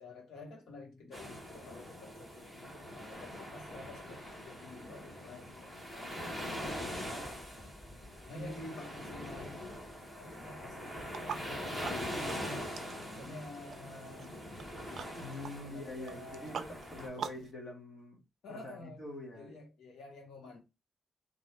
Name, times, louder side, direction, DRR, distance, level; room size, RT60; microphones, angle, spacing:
voice 1, 0.0-2.5 2.9-7.7 8.3-9.8 10.1-11.9 12.9-14.4 15.6-16.6 16.9-17.5 18.4-19.0 19.3-20.6, left 2 dB, 80° left, 1.3 m, -50 dB
sound 1, 1.1-17.1, equal, 15° left, 1.5 m, -43 dB
sound 2, 11.0-17.5, right 7 dB, 55° right, 0.4 m, -46 dB
voice 2, 15.2-18.2 18.5-19.5, left 1 dB, 30° left, 1.2 m, -45 dB
3.8 x 2.6 x 3.3 m
wide cardioid pair, 170°, 0 cm